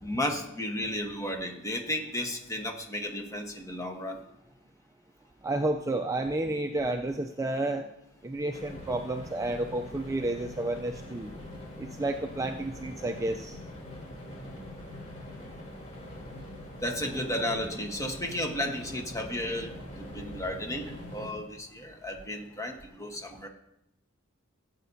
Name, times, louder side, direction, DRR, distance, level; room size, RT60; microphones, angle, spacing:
voice 1, 0.0-4.2 16.8-23.5, left 1 dB, 15° left, 3 dB, 1.2 m, -33 dB
voice 2, 5.4-7.9 8.2-11.3 11.8-13.6, right 2 dB, 15° right, 5 dB, 0.4 m, -31 dB
sound 1, 8.5-21.3, left 1 dB, 35° left, 3.3 m, -43 dB
16.5 x 8.2 x 2.7 m, 0.81 s
head